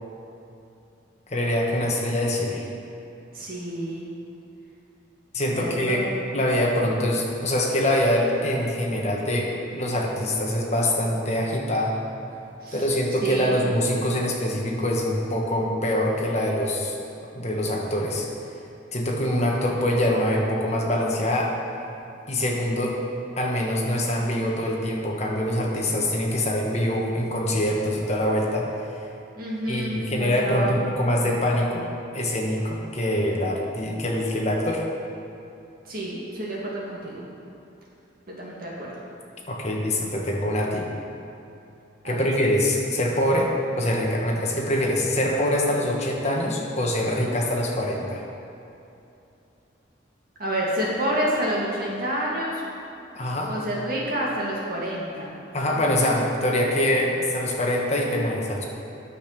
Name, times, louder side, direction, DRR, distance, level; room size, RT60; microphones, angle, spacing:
voice 1, 1.3-2.6 5.3-6.0 6.3-11.9 12.7-16.9 17.3-18.3 18.9-21.5 22.3-23.0 23.4-28.7 29.7-31.8 32.1-34.8 39.5-40.9 42.0-48.2 53.1-53.5 55.5-58.6, left 1 dB, 35° left, -1 dB, 1.3 m, -24 dB
voice 2, 3.3-4.1 5.5-6.2 12.6-12.9 13.2-13.6 29.4-30.9 35.9-37.2 38.3-38.9 42.0-42.3 50.4-52.6 53.5-55.3, right 1 dB, 50° right, -5 dB, 2.2 m, -29 dB
9.5 x 7.0 x 6.0 m, 2.8 s
head